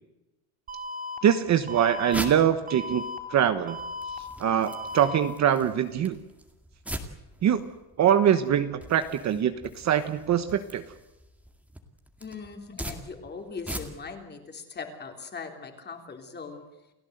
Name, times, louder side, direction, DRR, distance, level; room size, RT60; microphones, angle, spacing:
Alarm, 0.7-1.2 1.7-2.2 2.7-3.2 3.7-4.2 4.7-5.2, left 1 dB, 20° right, 4.2 m, -36 dB
voice 1, 1.2-3.0 3.3-3.8 4.4-6.2 7.4-7.6 8.0-10.8, right 9 dB, 35° right, 10 dB, 1.2 m, -23 dB
sound 1, 1.4-14.2, right 1 dB, 5° right, 2.1 m, -42 dB
voice 2, 12.2-16.6, left 5 dB, 20° left, 5 dB, 3.3 m, -40 dB
29.5 x 16.0 x 8.0 m, 0.99 s
cardioid pair, 170°, 45 cm